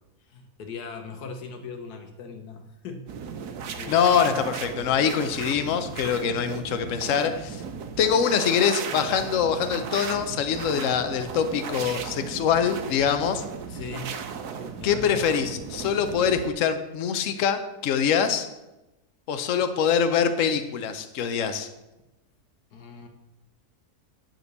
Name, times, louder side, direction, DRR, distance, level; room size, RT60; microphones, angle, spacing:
voice 1, 0.3-3.0 3.8-4.3 13.7-14.1 14.8-15.0 22.7-23.1, left 4 dB, 85° left, 6 dB, 1.7 m, -39 dB
sound 1, 3.1-16.5, right 6 dB, 80° right, 1.3 m, -36 dB
voice 2, 3.9-7.6 8.0-13.4 14.8-18.5 19.3-21.7, left 7 dB, 60° left, 9 dB, 1.1 m, -24 dB
9.7 x 4.4 x 6.7 m, 0.99 s
omnidirectional pair, 1.6 m